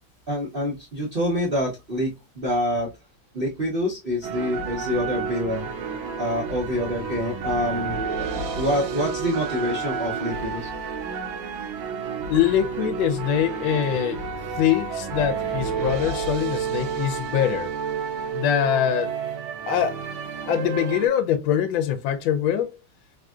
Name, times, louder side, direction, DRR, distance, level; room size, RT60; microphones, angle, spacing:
voice 1, 0.3-2.9 3.3-5.7 6.2-8.0 8.6-10.7, equal, 60° right, 0.5 m, -26 dB
sound 1, 4.2-21.1, right 5 dB, 80° right, 1.4 m, -30 dB
voice 2, 12.3-14.2 14.6-17.7 18.3-19.1 19.7-20.0 20.5-22.8, left 10 dB, 75° left, 1.3 m, -23 dB
3.5 x 2.6 x 2.3 m
omnidirectional pair, 2.2 m